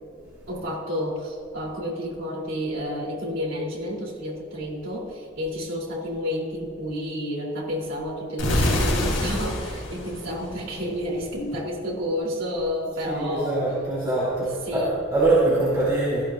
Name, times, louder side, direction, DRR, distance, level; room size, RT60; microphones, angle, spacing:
voice 1, 0.5-13.7 14.4-15.0, equal, 75° right, -3 dB, 3.3 m, -30 dB
sound 1, 8.4-11.2, left 1 dB, 70° left, 3.2 m, -26 dB
voice 2, 13.0-16.2, right 2 dB, 20° right, -9 dB, 3.1 m, -23 dB
16.5 x 15.5 x 2.5 m, 2.2 s
head